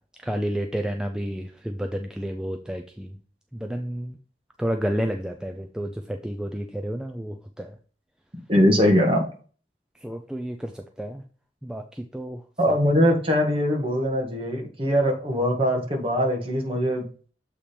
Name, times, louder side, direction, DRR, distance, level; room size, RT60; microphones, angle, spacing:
voice 1, 0.2-3.1 3.5-4.2 4.6-7.7 10.0-11.2 11.6-12.4, equal, 5° right, 4 dB, 0.4 m, -30 dB
voice 2, 8.5-9.3 12.6-17.0, equal, 30° right, 2 dB, 1.5 m, -21 dB
7.4 x 3.3 x 4.3 m, 0.40 s
head